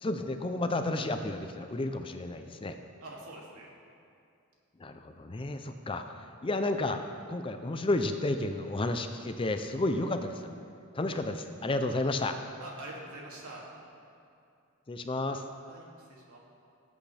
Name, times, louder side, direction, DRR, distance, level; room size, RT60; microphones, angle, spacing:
voice 1, 0.0-2.8 4.8-10.5 10.9-12.4 14.9-15.4, left 2 dB, 25° left, 7 dB, 0.5 m, -32 dB
voice 2, 3.0-3.6 12.6-13.6 15.6-16.4, right 2 dB, 80° right, -4 dB, 2.6 m, -45 dB
18.5 x 8.4 x 3.4 m, 2.5 s
head